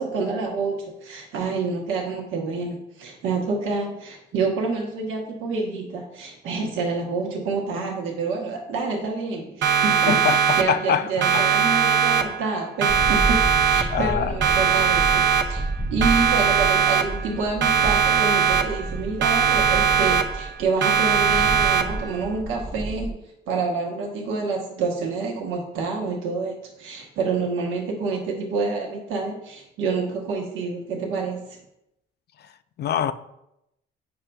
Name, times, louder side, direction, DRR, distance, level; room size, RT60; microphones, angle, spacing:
voice 1, 0.0-15.6 15.9-31.6, right 4 dB, 85° right, 1.0 m, -28 dB
Siren, 9.6-10.9 11.2-12.5 12.8-14.1 14.4-15.7 16.0-17.3 17.6-18.9 19.2-20.5 20.8-22.1, right 7 dB, 65° right, 0.7 m, -20 dB
voice 2, 10.1-11.4 13.9-14.4 32.4-32.5 32.8-33.1, left 9 dB, 55° left, 0.4 m, -25 dB
sound 1, 12.9-23.1, right 2 dB, 5° right, 0.6 m, -31 dB
8.7 x 5.4 x 2.3 m
cardioid pair, 90°, 20 cm